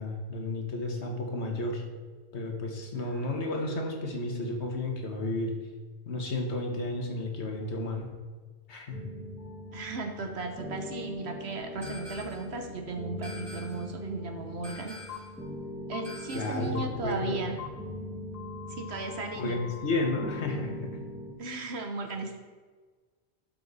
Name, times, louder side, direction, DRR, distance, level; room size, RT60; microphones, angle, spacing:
voice 1, 0.0-1.8 2.3-5.6 6.1-8.1 8.7-9.1 16.3-17.4 19.3-21.0, left 2 dB, 90° left, 2 dB, 1.6 m, -32 dB
voice 2, 2.9-3.3 9.7-14.9 15.9-17.6 18.7-19.6 21.4-22.4, right 3 dB, 75° right, 4 dB, 1.2 m, -36 dB
sound 1, 8.9-21.3, left 1 dB, 5° right, 1.5 m, -42 dB
sound 2, 11.8-12.6 13.2-14.0 14.6-15.4 16.0-16.8, left 1 dB, 25° right, 1.3 m, -46 dB
sound 3, 15.1-15.2 15.9-16.0 16.7-16.8 17.6-17.7 18.3-20.5, left 11 dB, 60° left, 1.0 m, -44 dB
12.0 x 5.9 x 4.1 m, 1.4 s
omnidirectional pair, 1.1 m